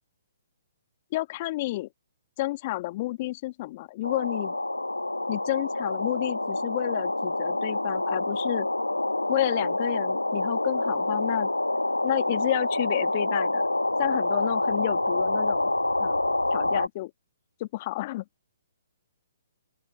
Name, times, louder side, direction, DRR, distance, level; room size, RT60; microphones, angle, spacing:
voice 1, 1.1-1.9 2.4-4.6 5.3-8.7 9.3-11.5 12.0-13.6 14.0-15.7 16.0-16.2 16.5-17.1 17.6-18.2, left 18 dB, 35° left, 1.5 m, -30 dB
sound 1, 4.0-16.9, left 2 dB, 85° left, 1.1 m, -27 dB
open air
figure-of-eight pair, 130°, 0 cm